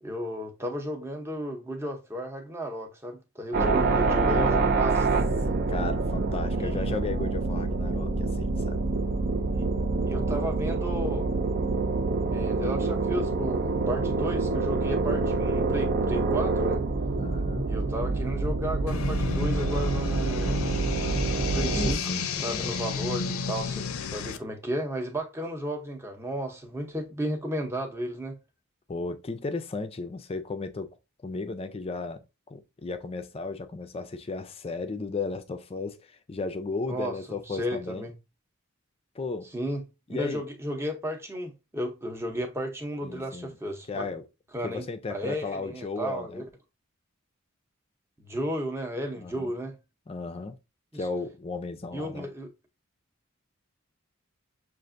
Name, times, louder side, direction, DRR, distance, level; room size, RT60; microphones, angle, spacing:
voice 1, 0.0-5.3 6.6-6.9 9.5-9.7 10.1-11.3 12.3-16.8 17.7-20.7 21.4-22.0 22.4-28.4 36.9-38.1 39.5-39.8 40.1-44.1 44.5-46.5 48.2-49.7 50.9-51.0 51.9-52.5, equal, 10° right, 0.7 m, -34 dB
sound 1, 3.5-21.9, right 3 dB, 45° right, 0.4 m, -26 dB
voice 2, 3.6-4.9 5.7-8.9 17.2-17.7 21.5-22.8 28.9-30.9 31.2-32.2 32.5-38.0 39.2-39.5 40.1-40.4 43.0-43.5 43.9-44.2 44.6-46.4 49.2-49.5 50.1-50.5 50.9-52.3, left 3 dB, 25° left, 0.4 m, -35 dB
sound 2, 18.9-24.4, left 5 dB, 80° left, 0.5 m, -32 dB
6.4 x 2.5 x 2.5 m
head